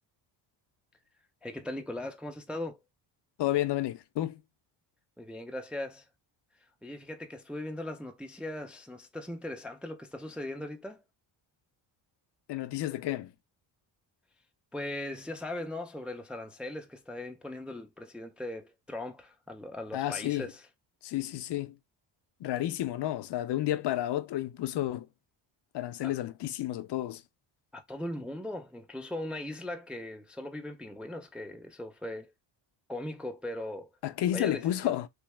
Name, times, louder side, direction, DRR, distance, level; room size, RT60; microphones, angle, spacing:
voice 1, 1.4-2.8 5.2-6.0 6.8-11.0 14.7-20.6 26.0-26.1 27.7-32.3 32.9-33.9 34.3-35.0, left 1 dB, 5° right, 0.4 m, -39 dB
voice 2, 3.4-4.4 12.5-13.3 19.9-20.5 21.0-21.8 22.4-25.1 25.7-27.2 34.0-35.1, left 13 dB, 60° left, 0.5 m, -31 dB
3.2 x 2.8 x 3.2 m
cardioid pair, 125°, 46 cm